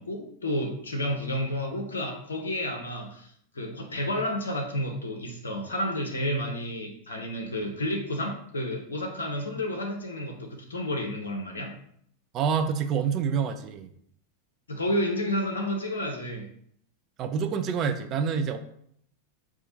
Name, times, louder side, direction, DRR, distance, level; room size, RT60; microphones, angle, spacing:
voice 1, 0.0-11.7 14.7-16.5, left 1 dB, 70° left, 3 dB, 0.6 m, -31 dB
voice 2, 12.3-13.9 17.2-18.6, right 6 dB, 35° right, 7 dB, 0.4 m, -27 dB
4.2 x 2.4 x 3.9 m, 0.66 s
figure-of-eight pair, 90°, 0 cm